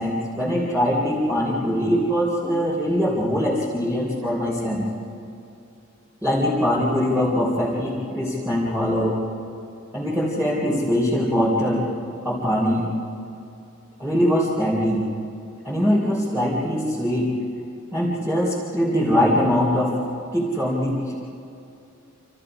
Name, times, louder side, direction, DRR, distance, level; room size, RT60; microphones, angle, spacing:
voice 1, 0.0-4.8 6.2-9.2 9.9-11.9 12.2-12.9 14.0-15.1 15.6-17.3 17.9-19.9 20.3-21.1, equal, 10° right, -6 dB, 3.6 m, -22 dB
28.5 x 27.5 x 5.0 m, 2.7 s
head